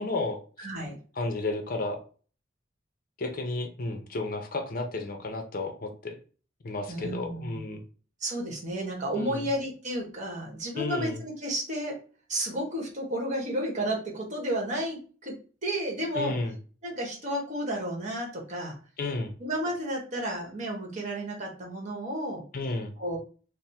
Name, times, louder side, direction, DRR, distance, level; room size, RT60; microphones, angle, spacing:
voice 1, 0.0-0.7 1.2-2.0 3.2-6.2 6.6-7.8 9.2-9.5 10.8-11.2 16.1-16.6 19.0-19.3 22.5-22.9, left 2 dB, 45° left, 5 dB, 0.6 m, -32 dB
voice 2, 0.6-1.0 6.9-7.6 8.2-12.0 12.3-15.3 15.6-16.4 16.8-18.8 19.4-22.4 23.0-23.2, right 1 dB, 40° right, -1 dB, 1.1 m, -32 dB
3.4 x 2.0 x 4.2 m, 0.39 s
head